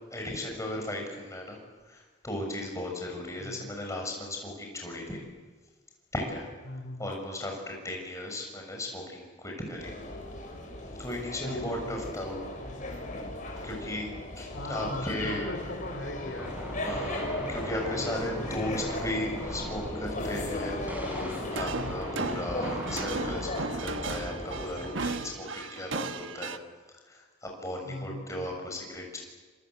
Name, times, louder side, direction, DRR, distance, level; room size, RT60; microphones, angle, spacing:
voice 1, 0.1-1.6 1.9-5.2 6.1-6.5 7.0-9.9 11.0-12.4 13.6-15.5 16.8-17.2 17.5-20.8 21.5-26.6 27.1-29.2, left 1 dB, 15° left, 1 dB, 7.0 m, -36 dB
voice 2, 3.4-3.7 6.6-7.1 11.4-12.0 14.5-16.5 16.9-17.5 17.8-19.1 19.6-19.9 21.7-22.1 27.8-28.4, left 1 dB, 75° left, 6 dB, 3.9 m, -40 dB
sound 1, 9.8-25.2, left 1 dB, 45° left, 6.7 m, -37 dB
sound 2, 16.4-24.4, equal, 10° right, 5.6 m, -39 dB
sound 3, 21.5-26.6, right 3 dB, 90° right, 1.3 m, -36 dB
27.0 x 25.0 x 8.2 m, 1.3 s
head